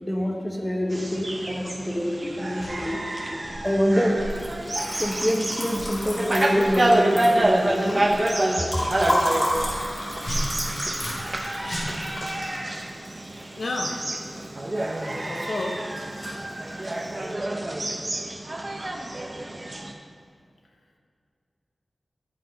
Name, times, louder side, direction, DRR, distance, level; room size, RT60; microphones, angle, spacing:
voice 1, 0.0-3.0 3.6-4.2 5.0-8.1, equal, 10° left, 1 dB, 1.0 m, -26 dB
sound 1, 0.9-19.9, right 1 dB, 30° right, 0.7 m, -28 dB
sound 2, 2.6-2.8 3.4-3.6 4.2-4.4 4.9-5.1 5.7-5.9 6.6-6.7 7.4-7.5 8.0-8.2 8.8-9.0 9.5-9.8 10.2-11.4 11.6-12.3, equal, 60° left, 1.7 m, -34 dB
Liquid, 4.2-14.5 14.8-15.5 15.7-16.5, equal, 30° left, 2.5 m, -32 dB
voice 2, 13.6-14.0 15.3-15.8 16.7-17.2, left 2 dB, 80° left, 2 dB, 0.9 m, -32 dB
9.2 x 6.1 x 5.1 m, 2.3 s
wide cardioid pair, 95°, 0 cm